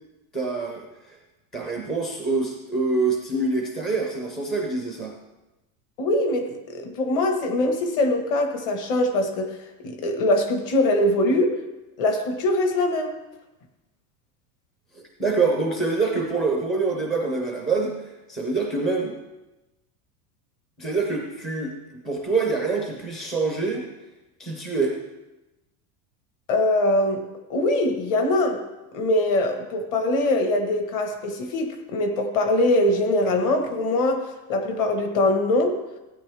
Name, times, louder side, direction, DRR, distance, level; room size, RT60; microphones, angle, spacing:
voice 1, 0.3-1.2 1.5-5.2 14.9-18.0 18.3-19.1 20.8-21.7 22.0-23.8 24.4-24.9, right 3 dB, ahead, 0 dB, 0.3 m, -25 dB
voice 2, 6.0-9.6 9.8-11.6 12.0-13.1 26.5-27.2 27.5-28.6 28.9-35.8, left 1 dB, 40° left, 5 dB, 1.5 m, -22 dB
16.0 x 9.2 x 3.4 m, 1.0 s
supercardioid pair, 165°, 48 cm